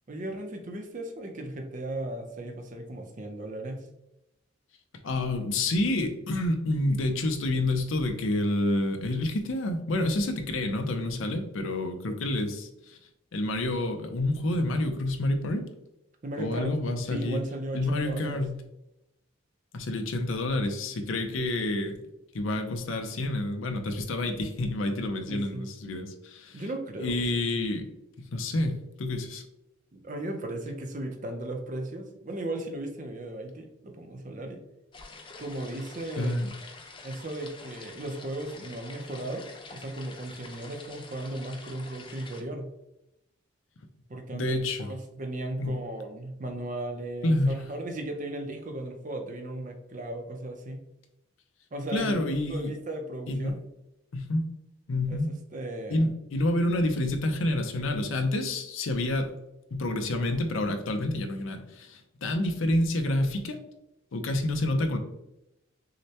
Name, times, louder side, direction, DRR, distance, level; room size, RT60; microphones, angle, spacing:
voice 1, 0.1-3.9 16.2-16.7 17.1-18.4 25.3-25.7 26.5-27.3 29.9-34.6 35.4-36.4 37.0-42.7 44.1-50.8 51.7-53.6 55.1-56.0, right 1 dB, 40° right, 4 dB, 0.6 m, -36 dB
voice 2, 5.0-13.0 13.3-15.6 16.4-17.4 17.7-18.6 19.7-22.0 22.3-26.6 27.0-27.9 28.2-29.4 36.2-36.5 44.3-44.9 45.6-45.8 47.2-47.6 51.9-52.7 53.3-53.5 54.1-54.4 54.9-55.3 55.9-59.3 59.7-63.6 64.1-65.0, left 1 dB, 75° left, 5 dB, 0.6 m, -28 dB
sound 1, 34.9-42.4, left 3 dB, 25° left, 0.5 m, -47 dB
6.4 x 2.2 x 2.8 m, 0.88 s
head